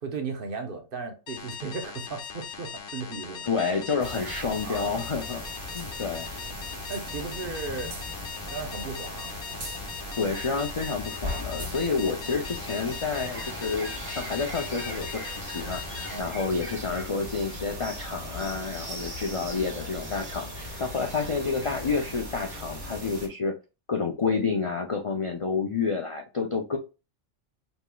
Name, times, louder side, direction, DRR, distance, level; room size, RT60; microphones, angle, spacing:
voice 1, 0.0-3.5 4.5-4.9 6.9-7.9 8.5-9.3 16.1-16.3, right 4 dB, 50° right, 0.9 m, -36 dB
sound 1, 1.3-16.2, left 7 dB, 80° left, 1.1 m, -40 dB
voice 2, 3.4-5.4 5.7-6.3 10.2-23.6 23.9-26.8, left 4 dB, 50° left, 0.4 m, -29 dB
sound 2, 4.0-23.3, left 1 dB, 75° right, 1.8 m, -38 dB
Bird, 12.6-22.2, right 1 dB, 10° right, 1.2 m, -45 dB
5.4 x 3.1 x 2.2 m
omnidirectional pair, 1.2 m